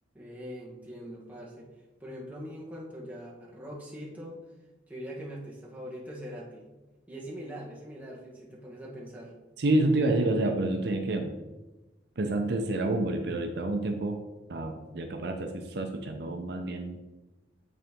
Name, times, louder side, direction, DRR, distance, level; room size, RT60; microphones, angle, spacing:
voice 1, 0.1-1.7 2.0-4.4 4.9-6.6 7.1-9.3, equal, 10° right, -4 dB, 1.2 m, -42 dB
voice 2, 9.6-11.3 12.2-14.2 14.5-17.0, right 2 dB, 55° right, 4 dB, 0.5 m, -28 dB
8.4 x 3.9 x 3.5 m, 1.1 s
head